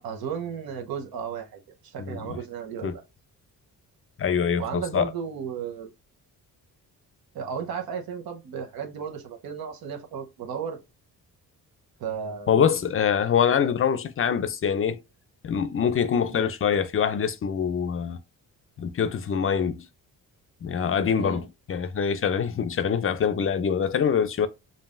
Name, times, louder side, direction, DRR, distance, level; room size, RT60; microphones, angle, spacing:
voice 1, 0.0-3.0 4.6-5.9 7.3-10.8 12.0-12.6 16.3-16.5 21.2-21.5, right 7 dB, 85° right, 1.0 m, -34 dB
voice 2, 2.0-2.4 2.8-2.9 4.2-5.1 12.5-15.0 15.4-18.2 18.8-19.9 20.6-24.5, left 7 dB, 40° left, 0.5 m, -24 dB
5.3 x 2.6 x 2.5 m
cardioid pair, 110°, 35 cm